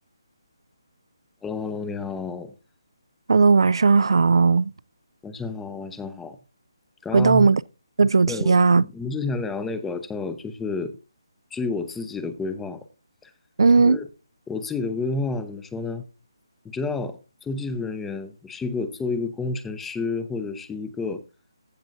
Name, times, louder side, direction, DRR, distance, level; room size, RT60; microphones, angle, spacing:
voice 1, 1.4-2.5 5.2-6.4 7.0-7.5 8.3-10.9 11.5-12.8 13.2-13.3 13.8-14.1 14.5-16.0 16.6-21.2, left 3 dB, 5° left, 0.6 m, -30 dB
voice 2, 3.3-4.7 7.1-7.6 8.0-8.8 13.6-14.0, right 4 dB, 75° right, 0.3 m, -17 dB
15.0 x 6.1 x 2.6 m
figure-of-eight pair, 160°, 3 cm